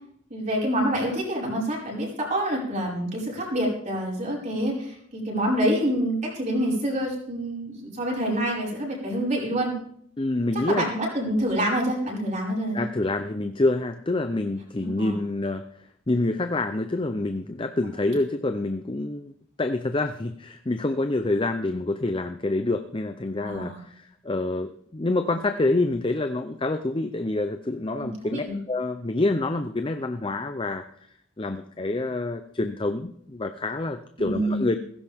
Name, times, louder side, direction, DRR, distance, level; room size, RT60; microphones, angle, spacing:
voice 1, 0.3-9.7 10.7-12.8 14.8-15.2 23.4-23.8 27.9-28.6 34.2-34.6, right 1 dB, 40° right, -3 dB, 5.4 m, -27 dB
voice 2, 10.2-10.9 12.7-15.6 16.1-19.3 19.6-30.8 31.4-34.8, left 2 dB, 25° left, 8 dB, 0.6 m, -27 dB
16.5 x 15.5 x 3.6 m, 0.67 s
head